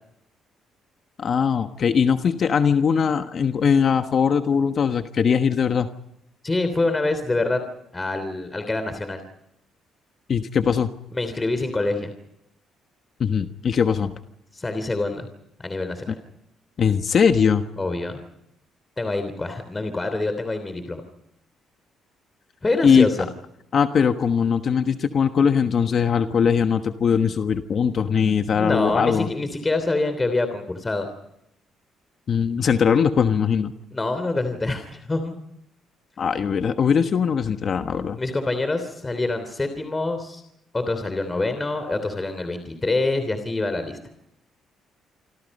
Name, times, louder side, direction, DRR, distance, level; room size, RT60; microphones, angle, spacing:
voice 1, 1.2-5.9 10.3-10.9 13.2-14.1 16.1-16.2 16.8-17.6 22.8-23.1 23.7-29.3 32.3-33.7 36.2-38.2, left 6 dB, 50° left, 8 dB, 1.3 m, -20 dB
voice 2, 6.4-7.6 7.9-9.2 11.1-12.1 14.5-15.3 15.6-16.2 17.8-18.2 19.0-21.0 22.6-23.2 28.5-31.1 33.9-35.3 38.2-40.4 40.7-44.0, left 2 dB, 20° left, 9 dB, 3.2 m, -25 dB
27.5 x 25.5 x 5.4 m, 0.81 s
cardioid pair, 100°, 0 cm